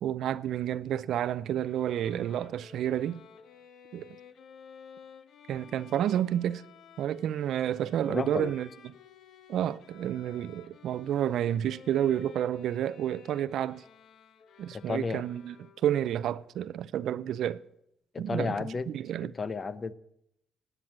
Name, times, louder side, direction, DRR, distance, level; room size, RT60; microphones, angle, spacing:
voice 1, 0.0-3.2 3.9-4.1 5.5-6.6 7.0-8.7 9.5-13.8 14.6-15.6 15.8-17.6 18.2-19.4, right 10 dB, 75° right, 0.5 m, -30 dB
Bowed string instrument, 1.6-16.1, left 7 dB, 70° left, 1.1 m, -54 dB
voice 2, 8.1-8.5 14.7-15.2 18.1-18.9 19.2-19.9, left 4 dB, 35° left, 0.8 m, -32 dB
18.5 x 9.0 x 7.5 m
cardioid pair, 90°, 0 cm